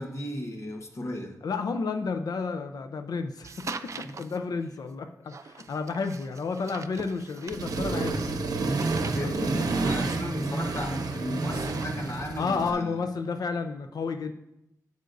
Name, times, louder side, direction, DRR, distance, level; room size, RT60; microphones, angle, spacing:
voice 1, 0.0-1.4 4.0-4.2 9.1-12.9, left 1 dB, 50° left, 2 dB, 1.2 m, -35 dB
voice 2, 1.4-8.3 8.6-8.7 9.0-9.7 12.4-14.3, left 4 dB, 80° left, 7 dB, 0.5 m, -31 dB
sound 1, 3.4-4.4 5.3-11.1 11.4-12.4, right 5 dB, 50° right, 0.4 m, -43 dB
Accelerating revving vroom, 7.5-12.7, right 3 dB, 75° right, 0.8 m, -29 dB
11.0 x 8.1 x 2.6 m, 0.86 s
wide cardioid pair, 140°, 6 cm